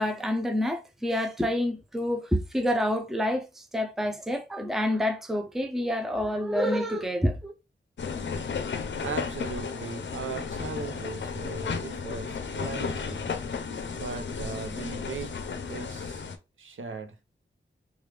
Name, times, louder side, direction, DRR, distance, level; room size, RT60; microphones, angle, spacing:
voice 1, 0.0-7.5, left 1 dB, ahead, 0.5 m, -28 dB
sound 1, 8.0-16.4, left 5 dB, 65° left, 0.5 m, -34 dB
voice 2, 9.0-13.3 13.9-15.4 15.7-16.2 16.6-17.1, right 4 dB, 80° right, 0.6 m, -38 dB
3.3 x 2.3 x 3.1 m
wide cardioid pair, 110°, 20 cm